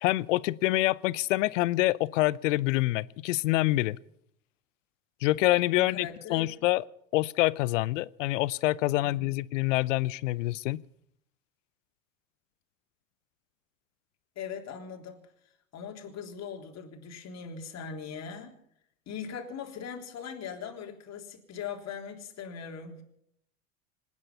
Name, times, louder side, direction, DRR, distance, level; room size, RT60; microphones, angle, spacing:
voice 1, 0.0-4.0 5.2-6.8 7.1-10.8, left 18 dB, 65° left, 0.7 m, -26 dB
voice 2, 5.8-6.5 9.0-9.3 14.4-15.2 15.7-18.5 19.1-23.0, left 7 dB, 40° left, 3.6 m, -40 dB
26.5 x 9.8 x 5.5 m
hypercardioid pair, 80°, 40 cm